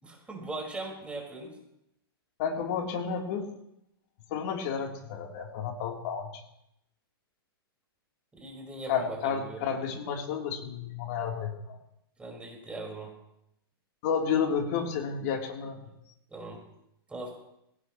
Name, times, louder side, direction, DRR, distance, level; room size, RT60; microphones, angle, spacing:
voice 1, 0.0-1.6 8.3-9.9 12.2-13.1 16.3-16.6 17.1-17.3, right 2 dB, 10° right, -1 dB, 4.9 m, -40 dB
voice 2, 2.4-3.5 4.3-6.3 8.9-11.8 14.0-15.8, left 7 dB, 50° left, 1 dB, 3.4 m, -31 dB
20.5 x 18.0 x 3.1 m, 0.81 s
hypercardioid pair, 125°, 13 cm